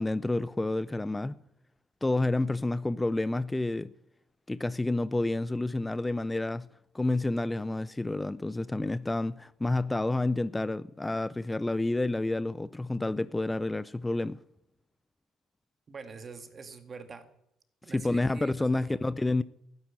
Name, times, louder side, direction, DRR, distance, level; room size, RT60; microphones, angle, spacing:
voice 1, 0.0-1.4 2.0-3.9 4.5-6.7 6.9-14.4 17.9-19.4, left 2 dB, 15° left, 0.4 m, -29 dB
voice 2, 15.9-17.3 17.8-18.9, right 4 dB, 40° right, 1.9 m, -45 dB
12.5 x 9.6 x 8.7 m
supercardioid pair, 65°, 0 cm